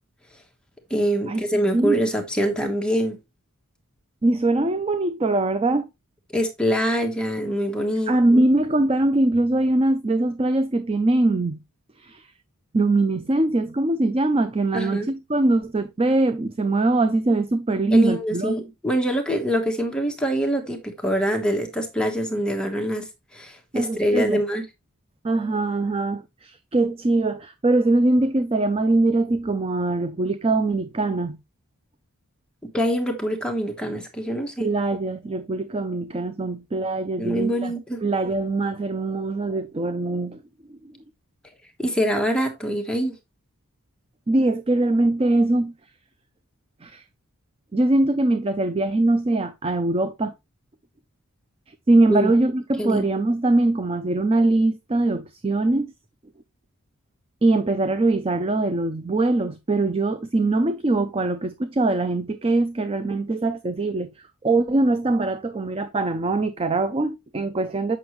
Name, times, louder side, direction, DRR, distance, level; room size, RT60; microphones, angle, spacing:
voice 1, 0.9-3.2 6.3-8.4 14.7-15.1 17.9-23.1 23.3-24.6 32.7-34.7 37.2-38.0 41.8-43.1 52.1-52.3 52.8-53.0, equal, 5° left, 1.2 m, -24 dB
voice 2, 4.2-5.9 8.1-11.6 12.0-12.3 12.7-18.5 23.7-24.4 25.2-31.4 34.6-37.7 38.0-40.4 40.7-40.8 44.3-45.7 46.8-47.0 47.7-50.3 51.7-55.9 57.4-68.0, right 2 dB, 25° right, 0.4 m, -22 dB
7.9 x 6.1 x 3.0 m
head